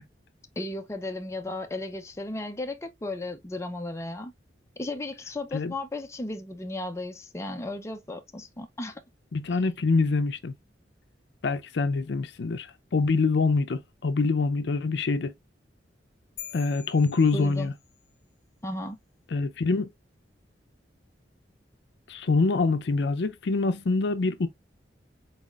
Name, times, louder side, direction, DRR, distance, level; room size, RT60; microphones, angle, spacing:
voice 1, 0.6-4.3 4.8-9.0 17.3-17.7 18.6-19.0, left 2 dB, 15° left, 0.5 m, -35 dB
voice 2, 9.3-10.5 11.4-15.3 16.5-17.7 19.3-19.9 22.1-24.5, left 3 dB, 65° left, 0.5 m, -25 dB
sound 1, 16.4-18.1, left 10 dB, 50° left, 1.2 m, -45 dB
4.1 x 4.0 x 2.4 m
head